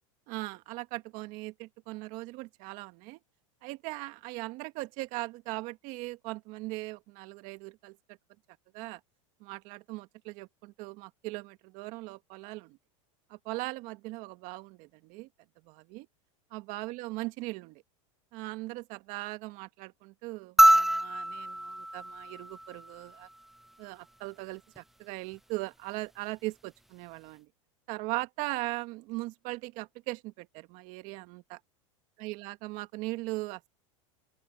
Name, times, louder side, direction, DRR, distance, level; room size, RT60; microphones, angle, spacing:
voice 1, 0.3-3.2 3.6-8.2 8.7-9.0 9.4-12.8 13.3-15.3 15.6-16.1 16.5-17.8 18.3-23.3 23.8-27.5 27.9-31.6 32.2-33.7, right 21 dB, 55° right, 1.5 m, -39 dB
sound 1, 20.6-23.1 24.8-24.9, right 1 dB, ahead, 0.6 m, -25 dB
open air
supercardioid pair, 130°, 16 cm